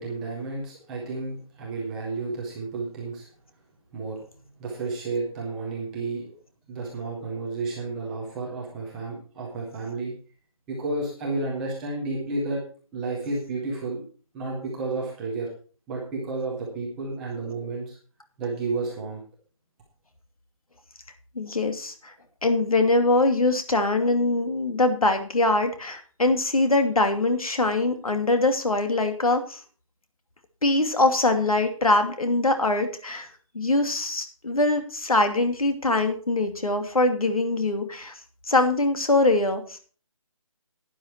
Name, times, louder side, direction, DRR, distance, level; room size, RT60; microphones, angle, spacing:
voice 1, 0.0-3.3 3.9-4.2 4.6-6.3 6.7-10.1 10.7-12.6 12.9-14.0 14.3-15.5 15.9-18.0 18.4-19.2, right 3 dB, ahead, -4 dB, 0.5 m, -31 dB
voice 2, 21.3-22.1 22.4-29.6 30.6-33.3 33.5-38.2 38.5-39.8, left 2 dB, 90° left, 6 dB, 2.6 m, -23 dB
11.5 x 9.6 x 4.4 m, 0.41 s
figure-of-eight pair, 170°, 18 cm